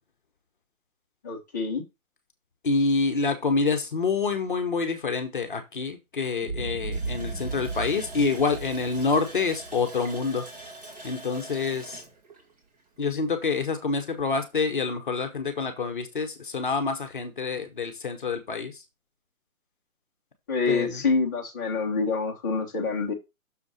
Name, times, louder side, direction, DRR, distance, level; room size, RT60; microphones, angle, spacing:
voice 1, 1.2-1.8 20.5-23.1, left 4 dB, 15° left, -2 dB, 1.0 m, -26 dB
voice 2, 2.6-10.5 11.0-12.0 13.0-18.8 20.7-21.0, left 4 dB, 35° left, 7 dB, 1.1 m, -27 dB
Boom, 6.4-10.7, right 3 dB, 50° right, 5.0 m, -36 dB
Water tap faucet, 6.9-13.4 13.7-13.8 14.3-14.5, right 2 dB, 30° right, 1.9 m, -44 dB
6.6 x 4.4 x 5.4 m, 0.23 s
hypercardioid pair, 170°, 42 cm